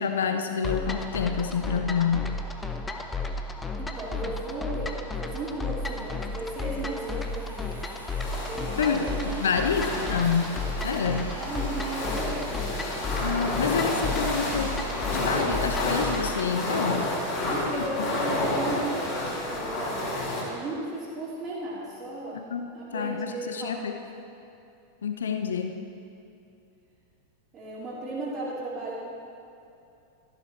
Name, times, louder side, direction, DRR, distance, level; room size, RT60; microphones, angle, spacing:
voice 1, 0.0-2.3 8.8-9.1 9.4-11.3 13.2-17.1 17.6-18.1 22.5-23.9 25.0-25.8, left 6 dB, 65° left, 6 dB, 0.7 m, -28 dB
sound 1, 0.6-16.5, left 3 dB, 10° left, 0.7 m, -33 dB
voice 2, 3.8-7.8 8.5-10.2 11.3-12.5 17.4-22.4 22.7-24.0 27.5-29.0, right 2 dB, 30° right, -9 dB, 2.3 m, -36 dB
sound 2, 5.1-18.8, right 1 dB, 85° right, 2.0 m, -44 dB
sound 3, 8.2-20.4, left 1 dB, 35° left, 3.1 m, -31 dB
13.5 x 12.0 x 3.2 m, 2.7 s
figure-of-eight pair, 90°, 0 cm